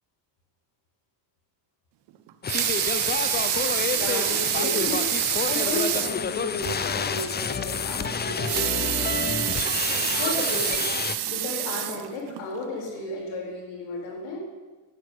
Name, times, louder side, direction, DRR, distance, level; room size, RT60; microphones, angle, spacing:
Water tap faucet / Sink (filling or washing) / Liquid, 2.3-6.2 6.7-6.8 7.1-7.2 8.3-12.4 13.0-13.1, right 14 dB, 65° right, 1.0 m, -27 dB
sound 1, 2.4-11.2, left 6 dB, 20° left, 0.7 m, -29 dB
voice 1, 3.9-8.9 10.2-10.9 11.2-14.4, left 2 dB, 85° left, 0 dB, 4.3 m, -33 dB
11.0 x 8.1 x 8.1 m, 1.2 s
cardioid pair, 105°, 44 cm